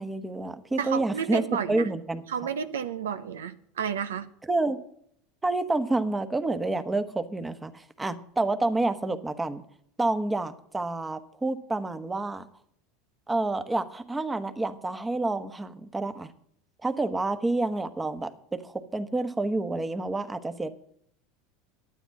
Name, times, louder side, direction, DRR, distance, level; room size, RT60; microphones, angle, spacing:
voice 1, 0.0-2.2 4.4-4.8 5.4-9.6 10.0-12.5 13.3-16.3 16.8-20.7, right 2 dB, 15° right, 1.2 m, -29 dB
voice 2, 0.8-1.9 2.3-4.3, right 7 dB, 90° right, 0.7 m, -31 dB
12.0 x 9.1 x 5.9 m
hypercardioid pair, 95°, 0 cm